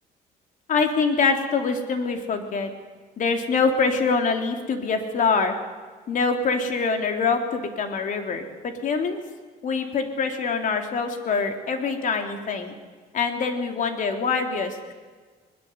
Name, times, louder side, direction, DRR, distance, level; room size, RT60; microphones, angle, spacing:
voice 1, 0.7-2.7 3.2-5.5 6.1-9.2 9.6-12.7 13.1-14.9, left 4 dB, 50° left, 5 dB, 3.5 m, -24 dB
21.5 x 21.0 x 8.2 m, 1.5 s
cardioid pair, 110°, 17 cm